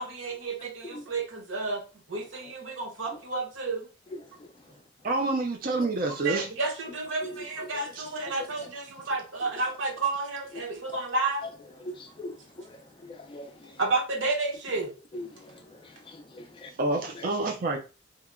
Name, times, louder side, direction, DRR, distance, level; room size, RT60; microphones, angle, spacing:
voice 1, 0.0-3.9 6.1-11.5 13.8-14.9, right 3 dB, 80° right, 0.9 m, -31 dB
voice 2, 4.2-4.6 7.2-8.0 8.3-8.5 9.6-9.7 10.9-11.0 11.4-11.5 11.8-13.8 15.1-16.7 17.1-17.3, left 1 dB, 25° left, 0.3 m, -42 dB
voice 3, 5.0-6.5 7.9-8.0 16.8-17.8, right 2 dB, 45° right, 0.4 m, -27 dB
2.8 x 2.1 x 3.6 m
head